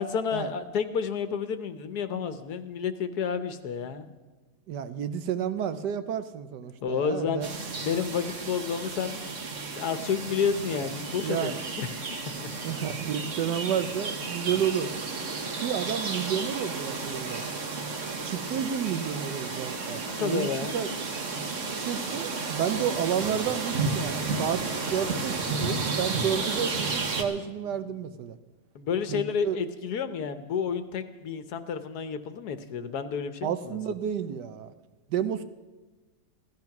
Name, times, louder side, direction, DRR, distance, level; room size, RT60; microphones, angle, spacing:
voice 1, 0.0-4.1 6.8-7.5 7.8-9.4 9.7-11.9 12.4-12.5 15.4-15.6 20.1-20.8 28.7-33.8, left 6 dB, 70° left, 10 dB, 1.4 m, -30 dB
voice 2, 4.7-7.5 11.2-11.6 12.6-14.9 15.6-17.4 18.2-20.9 21.8-24.6 24.9-28.4 29.1-29.6 33.4-34.7 35.1-35.4, right 8 dB, 75° right, 11 dB, 1.4 m, -31 dB
sound 1, 7.4-27.2, right 4 dB, 50° right, 1.5 m, -32 dB
16.0 x 13.5 x 5.9 m, 1.2 s
omnidirectional pair, 1.8 m